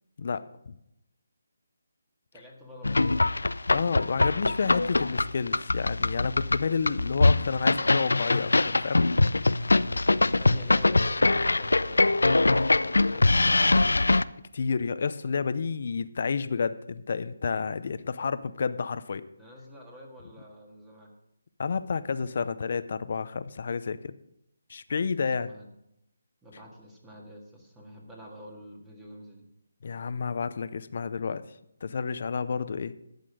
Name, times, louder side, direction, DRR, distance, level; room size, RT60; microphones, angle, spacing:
voice 1, 0.2-0.7 3.7-9.0 14.5-19.3 21.6-24.1 24.7-25.5 29.8-31.4 31.8-32.9, left 5 dB, 55° left, 14 dB, 0.6 m, -30 dB
voice 2, 2.3-3.3 10.1-13.6 19.4-21.1 24.9-25.7 26.4-29.5, equal, 10° right, -1 dB, 1.8 m, -48 dB
sound 1, 2.8-14.2, left 2 dB, 90° left, 0.4 m, -23 dB
11.5 x 8.3 x 5.0 m, 0.80 s
figure-of-eight pair, 160°, 0 cm